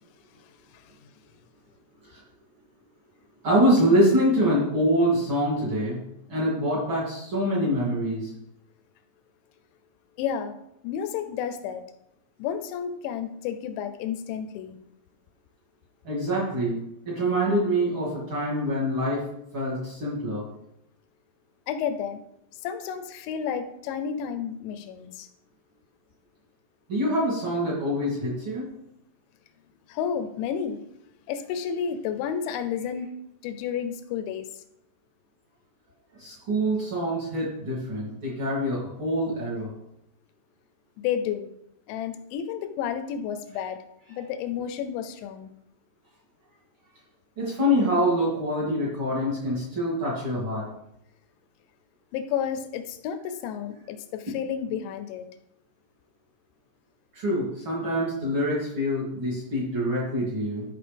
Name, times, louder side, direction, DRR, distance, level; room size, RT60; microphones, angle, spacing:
voice 1, 3.4-6.0 6.3-8.3 16.0-16.8 17.0-19.2 19.5-20.4 26.9-28.6 36.2-39.7 44.1-44.2 47.4-50.6 57.1-60.6, equal, 35° right, -6 dB, 2.6 m, -25 dB
voice 2, 10.2-10.5 10.8-11.8 12.4-14.8 21.7-22.2 22.6-25.3 29.9-30.8 31.3-33.1 33.4-34.5 41.0-41.5 41.9-43.8 44.1-45.5 52.1-55.3, left 8 dB, 85° left, 9 dB, 2.9 m, -31 dB
12.5 x 5.5 x 3.4 m, 0.79 s
omnidirectional pair, 5.3 m